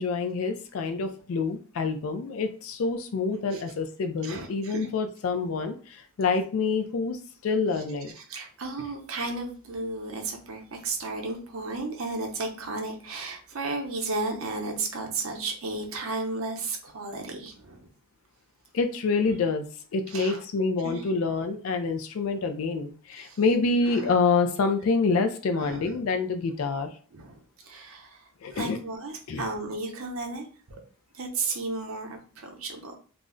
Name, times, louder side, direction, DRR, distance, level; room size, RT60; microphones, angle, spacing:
voice 1, 0.0-8.1 18.7-19.7 19.9-26.9 28.4-28.8 29.3-29.4, left 4 dB, 70° left, 7 dB, 0.4 m, -27 dB
voice 2, 4.2-4.9 8.1-17.9 19.3-19.4 20.1-20.4 20.8-21.1 23.2-23.4 23.9-24.2 25.5-26.0 27.1-30.8 31.1-32.9, right 3 dB, 70° right, 2 dB, 0.6 m, -34 dB
2.4 x 2.0 x 3.6 m, 0.40 s
head